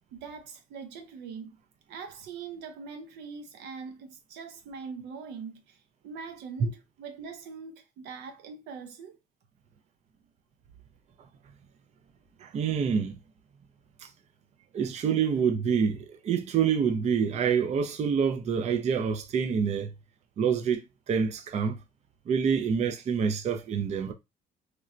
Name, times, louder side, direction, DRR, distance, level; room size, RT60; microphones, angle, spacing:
voice 1, 0.1-1.6 1.9-5.8 6.0-9.2, right 5 dB, 90° right, 0.6 m, -42 dB
voice 2, 12.4-13.2 14.0-14.1 14.7-19.9 20.4-20.8 21.1-21.8 22.3-24.1, right 6 dB, 40° right, 0.5 m, -27 dB
3.0 x 2.1 x 2.5 m
cardioid pair, 110°, 17 cm